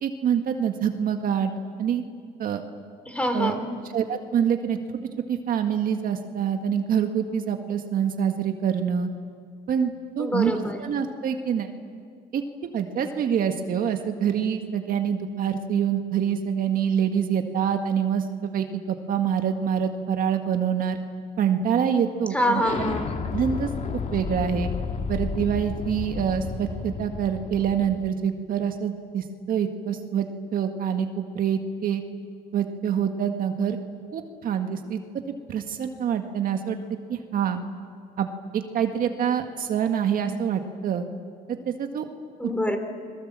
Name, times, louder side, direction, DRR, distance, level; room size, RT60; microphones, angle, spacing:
voice 1, 0.0-1.5 1.8-2.0 2.4-2.6 3.3-3.6 3.9-4.8 5.3-9.1 9.7-11.7 12.3-21.0 21.4-22.6 23.3-24.7 25.1-30.3 30.5-32.0 32.5-33.8 34.1-35.0 35.5-36.8 37.1-37.6 38.2-38.3 38.5-41.1 41.5-42.1, right 8 dB, 55° right, 5 dB, 1.9 m, -26 dB
voice 2, 3.1-3.7 10.2-10.8 22.3-23.1 42.4-42.8, equal, 5° left, 6 dB, 3.4 m, -25 dB
Explosion, 22.6-28.1, left 5 dB, 45° left, 2.0 m, -32 dB
29.5 x 22.0 x 7.6 m, 2.1 s
cardioid pair, 110°, 17 cm